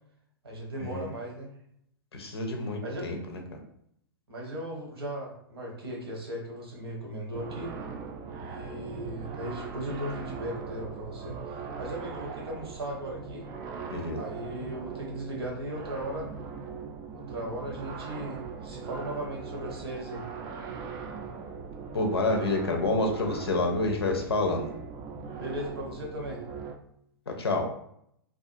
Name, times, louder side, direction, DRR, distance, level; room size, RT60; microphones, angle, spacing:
voice 1, 0.4-1.5 2.8-3.1 4.3-7.8 8.4-13.5 14.1-16.3 17.1-20.3 25.4-26.4, right 1 dB, 75° right, -1 dB, 1.0 m, -37 dB
voice 2, 2.1-3.4 13.9-14.2 21.9-24.7 27.3-27.7, left 2 dB, 80° left, 3 dB, 0.5 m, -28 dB
sound 1, 7.3-26.8, right 5 dB, 30° right, 0.3 m, -40 dB
2.5 x 2.4 x 2.6 m, 0.72 s
figure-of-eight pair, 110°, 13 cm